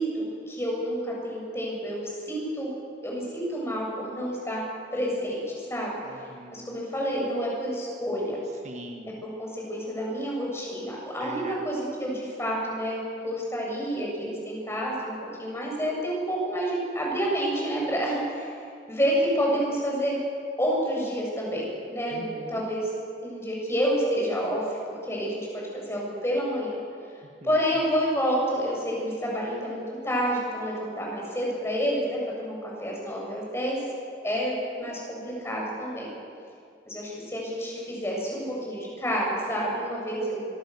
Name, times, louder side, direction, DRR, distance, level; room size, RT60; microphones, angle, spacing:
voice 1, 0.0-2.7 3.0-4.6 4.9-6.0 6.5-8.4 9.2-18.6 18.9-20.2 20.6-22.9 23.2-26.7 27.4-33.8 34.2-36.1 36.9-40.5, equal, 15° left, -3 dB, 7.8 m, -29 dB
voice 2, 6.0-6.7 8.6-9.2 11.2-11.6 22.1-22.7, right 1 dB, 40° right, 3 dB, 1.6 m, -42 dB
25.5 x 23.0 x 7.3 m, 2.4 s
head